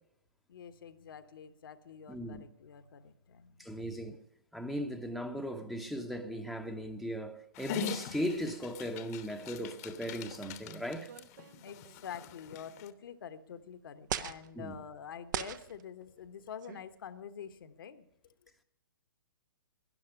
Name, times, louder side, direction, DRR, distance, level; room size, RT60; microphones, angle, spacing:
voice 1, 0.5-3.8 11.6-18.1, left 8 dB, 65° left, 1.2 m, -47 dB
voice 2, 2.1-2.4 3.6-4.2 4.5-11.1 14.6-14.7, equal, ahead, 0.9 m, -37 dB
Dog, 7.5-12.9, left 9 dB, 40° left, 1.0 m, -43 dB
sound 1, 11.1-12.0 12.9-13.0 14.1-14.5 15.3-15.8 16.6-16.9, right 10 dB, 55° right, 0.8 m, -39 dB
12.5 x 11.0 x 9.9 m
hypercardioid pair, 130°, 12 cm